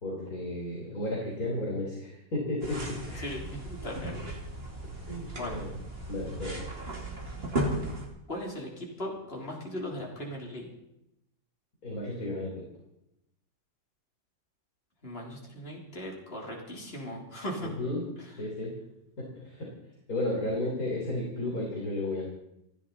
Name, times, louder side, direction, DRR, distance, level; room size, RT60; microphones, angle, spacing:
voice 1, 0.0-2.8 3.0-3.3 5.1-5.7 6.1-6.6 11.8-12.5 17.6-18.0 18.4-18.7 19.4-19.7 20.1-22.2, left 1 dB, 65° left, -3 dB, 4.0 m, -33 dB
sound 1, 2.6-8.1, right 1 dB, 40° right, 2.7 m, -36 dB
voice 2, 3.2-4.2 5.4-5.6 8.3-10.7 15.0-17.7 18.2-18.4, left 1 dB, 40° left, -2 dB, 3.9 m, -38 dB
28.5 x 10.5 x 4.2 m, 0.85 s
omnidirectional pair, 1.7 m